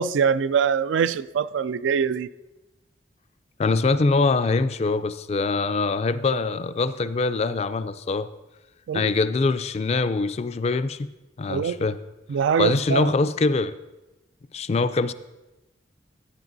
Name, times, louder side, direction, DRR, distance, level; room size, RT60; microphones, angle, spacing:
voice 1, 0.0-2.3 8.9-9.1 11.5-11.8 12.3-13.1, right 6 dB, 85° right, 0.3 m, -23 dB
voice 2, 3.6-8.3 8.9-11.1 11.4-12.0 12.6-13.8 14.5-15.1, left 3 dB, 35° left, 0.3 m, -23 dB
15.0 x 10.0 x 2.6 m
head